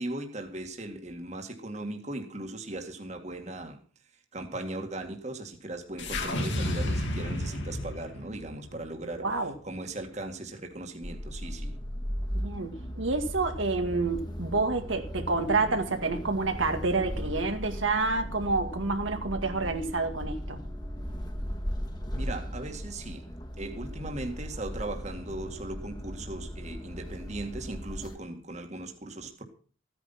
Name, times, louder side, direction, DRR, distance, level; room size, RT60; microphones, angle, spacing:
voice 1, 0.0-3.8 4.3-9.3 9.6-11.7 22.2-23.3 23.6-29.4, right 2 dB, 35° right, 4 dB, 2.0 m, -38 dB
sound 1, 6.0-10.3, left 1 dB, 65° left, 2.8 m, -33 dB
voice 2, 9.2-9.5 12.3-20.6, right 3 dB, 75° right, 5 dB, 2.0 m, -28 dB
sound 2, 11.0-28.2, equal, 20° left, 1.8 m, -37 dB
15.5 x 9.6 x 5.8 m, 0.41 s
head